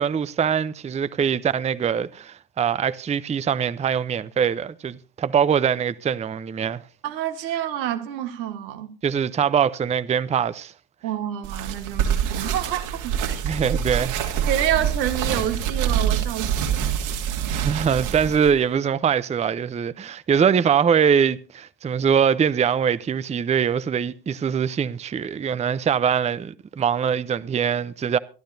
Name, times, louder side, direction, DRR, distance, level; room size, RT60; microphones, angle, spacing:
voice 1, 0.0-6.8 9.0-10.7 13.4-14.5 17.5-28.2, right 7 dB, 15° right, 0.5 m, -23 dB
voice 2, 7.0-9.0 11.0-13.4 14.5-16.8, right 11 dB, 90° right, 1.5 m, -28 dB
sound 1, 11.4-18.5, right 8 dB, 70° right, 2.6 m, -25 dB
23.5 x 11.5 x 2.7 m
hypercardioid pair, 80°, 49 cm